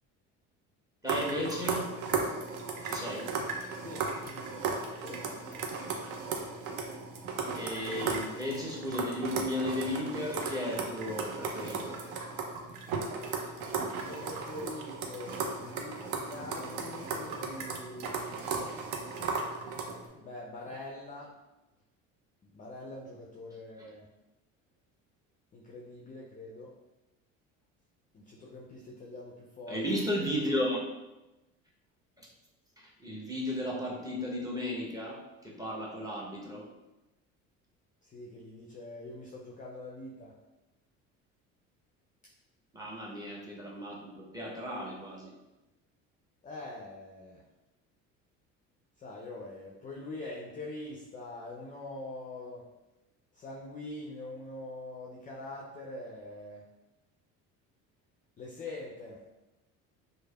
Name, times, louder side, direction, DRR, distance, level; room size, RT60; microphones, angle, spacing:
voice 1, 1.0-1.9 2.8-3.3 7.5-12.0 29.7-30.8 32.2-32.3 33.0-36.7 42.7-45.3, left 1 dB, 10° right, -3 dB, 0.7 m, -34 dB
sound 1, 1.1-20.1, right 4 dB, 65° right, 0.6 m, -36 dB
voice 2, 3.8-4.5 5.0-5.6 13.8-18.4 20.1-21.3 22.4-24.1 25.5-26.7 28.1-29.8 38.0-40.3 42.2-42.3 46.4-47.4 49.0-52.7 53.3-56.6 58.4-59.2, left 2 dB, 20° left, -2 dB, 0.3 m, -44 dB
3.1 x 2.1 x 2.2 m, 1.0 s
hypercardioid pair, 65°, 39 cm